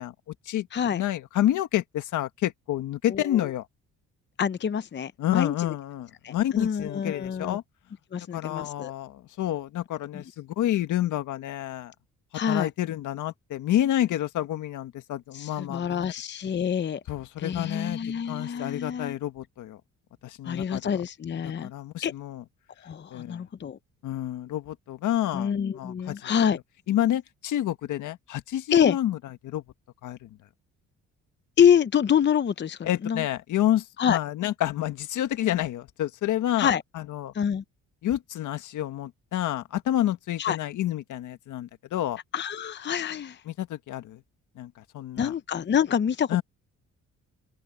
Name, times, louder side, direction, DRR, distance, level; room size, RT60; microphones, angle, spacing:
voice 1, 0.0-3.6 5.2-7.6 8.3-11.9 12.5-16.0 17.1-18.0 18.3-19.8 20.2-21.0 21.4-22.4 23.1-23.4 24.0-26.3 26.9-29.2 29.4-29.6 30.0-30.3 32.8-37.3 38.0-42.2 43.4-44.2 44.5-45.3 46.3-46.4, left 12 dB, 80° left, 1.7 m, -29 dB
voice 2, 3.1-3.4 4.4-5.5 6.2-7.6 8.1-8.9 10.1-10.2 12.3-12.7 15.3-17.0 17.4-19.1 20.5-21.7 22.0-22.1 22.8-23.8 25.3-26.6 28.7-29.0 31.6-33.2 34.0-34.2 36.6-36.8 37.3-37.6 40.4-40.6 42.3-43.4 45.2-46.4, left 8 dB, 35° left, 0.8 m, -26 dB
open air
cardioid pair, 90°, 30 cm